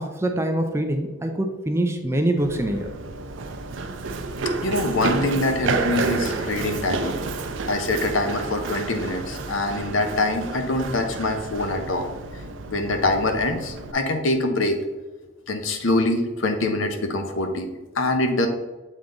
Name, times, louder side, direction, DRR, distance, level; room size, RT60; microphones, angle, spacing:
voice 1, 0.0-2.9, right 1 dB, 15° right, 4 dB, 0.5 m, -24 dB
Run, 2.4-13.9, right 3 dB, 75° right, 0.5 m, -30 dB
voice 2, 4.6-7.2 7.7-12.4 12.7-14.8 15.5-17.7 17.9-18.5, left 2 dB, 80° left, 6 dB, 0.8 m, -24 dB
7.4 x 3.7 x 3.8 m, 1.2 s
head